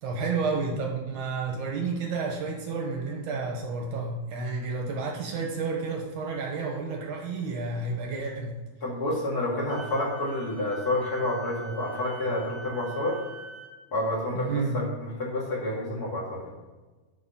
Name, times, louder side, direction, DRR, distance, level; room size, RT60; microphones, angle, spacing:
voice 1, 0.0-8.6 14.4-14.8, right 4 dB, 70° right, 0 dB, 2.0 m, -31 dB
voice 2, 8.8-13.2 13.9-16.5, left 1 dB, 50° left, -4 dB, 1.1 m, -29 dB
Wind instrument woodwind instrument, 9.7-13.7, right 2 dB, 50° right, 1.4 m, -44 dB
9.5 x 5.0 x 5.5 m, 1.2 s
omnidirectional pair, 4.7 m